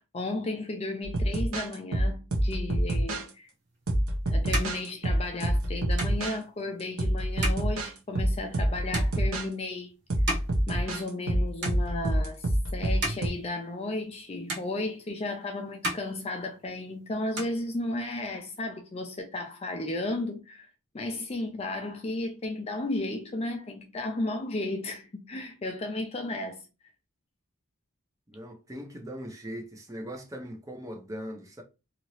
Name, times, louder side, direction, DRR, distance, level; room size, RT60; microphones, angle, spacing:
voice 1, 0.0-3.5 4.3-9.9 10.7-20.7 20.9-26.7, left 2 dB, 25° left, 0.4 m, -34 dB
sound 1, 1.0-3.3 3.9-6.4 7.0-7.9 8.2-9.5 10.1-13.3, right 1 dB, 70° right, 0.8 m, -27 dB
sound 2, 3.7-11.3 11.6-12.3 12.7-14.2 14.5-15.4 15.7-16.9 17.2-18.3, right 1 dB, 50° right, 1.1 m, -38 dB
voice 2, 28.3-31.6, equal, 15° right, 0.6 m, -40 dB
2.8 x 2.6 x 3.0 m
head